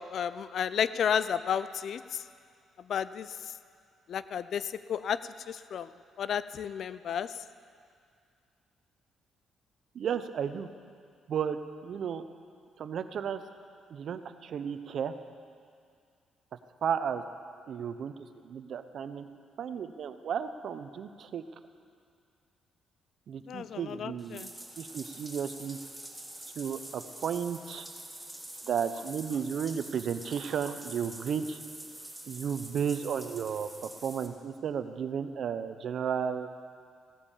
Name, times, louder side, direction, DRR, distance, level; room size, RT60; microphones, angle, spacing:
voice 1, 0.0-2.0 2.9-3.3 4.1-5.2 5.5-5.9 6.2-7.3 23.5-24.5, left 8 dB, 65° left, 15 dB, 0.5 m, -32 dB
voice 2, 9.9-10.7 11.3-12.2 12.8-13.4 13.9-15.1 16.8-17.2 17.7-18.1 18.4-19.3 19.6-21.4 23.3-24.5 24.8-25.8 26.6-27.9 28.7-31.6 32.3-36.5, right 7 dB, 65° right, 10 dB, 0.8 m, -33 dB
Bathtub (filling or washing), 24.2-34.3, right 1 dB, 5° right, 1.9 m, -46 dB
16.0 x 9.8 x 7.4 m, 2.2 s
cardioid pair, 90°, 0 cm